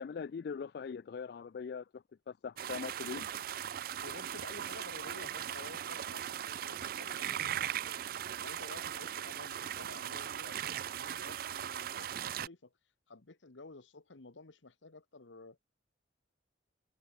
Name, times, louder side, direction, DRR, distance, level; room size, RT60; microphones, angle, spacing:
voice 1, 0.0-3.3, left 6 dB, 55° left, 0.3 m, -41 dB
sound 1, 2.6-12.5, right 10 dB, 50° right, 0.3 m, -39 dB
voice 2, 4.0-8.0 8.4-12.7 13.1-15.6, left 3 dB, 85° left, 1.3 m, -52 dB
head